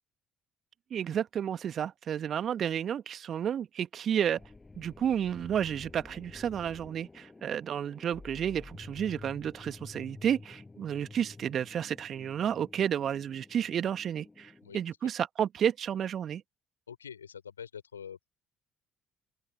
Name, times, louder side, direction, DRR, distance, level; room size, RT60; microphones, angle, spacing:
voice 1, 0.9-4.4 4.7-16.4, right 9 dB, 50° right, 1.6 m, -31 dB
sound 1, 4.4-14.8, left 3 dB, 20° left, 7.0 m, -50 dB
voice 2, 16.9-18.3, left 7 dB, 85° left, 3.8 m, -45 dB
open air
figure-of-eight pair, 50°, 0 cm